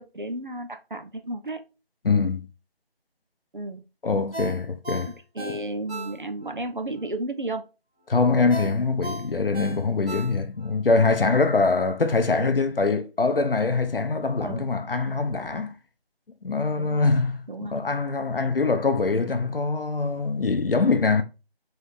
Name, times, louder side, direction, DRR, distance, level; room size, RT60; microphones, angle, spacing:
voice 1, 0.0-1.6 3.5-3.8 5.1-7.6 11.0-11.2 12.3-12.5 14.4-14.7 16.8-17.1 17.5-17.7, right 2 dB, 55° right, 0.4 m, -33 dB
voice 2, 2.0-2.5 4.0-5.1 8.1-15.7 16.4-21.2, left 4 dB, 60° left, 0.5 m, -23 dB
Ringtone, 4.3-6.6 7.0-7.1 8.5-10.7 11.1-11.2, right 1 dB, 85° right, 1.5 m, -36 dB
3.1 x 2.5 x 3.1 m
figure-of-eight pair, 180°, 31 cm